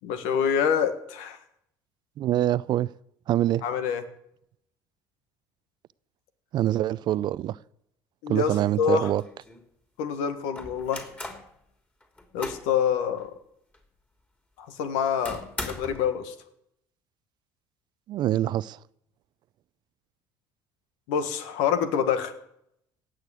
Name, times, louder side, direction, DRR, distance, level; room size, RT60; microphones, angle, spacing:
voice 1, 0.0-1.4 3.6-4.0 8.2-9.1 10.0-11.0 12.3-13.3 14.6-16.3 21.1-22.3, left 7 dB, 85° left, 1.6 m, -26 dB
voice 2, 2.2-2.9 3.3-3.6 6.5-7.6 8.3-9.2 18.1-18.8, right 13 dB, 60° right, 0.5 m, -25 dB
sound 1, 8.4-8.5 8.9-9.6 10.6-11.5 12.0-12.7 13.2-13.3 13.7-13.8 15.3-16.1, left 2 dB, 15° left, 3.1 m, -39 dB
17.0 x 6.6 x 8.4 m
supercardioid pair, 85°, 9 cm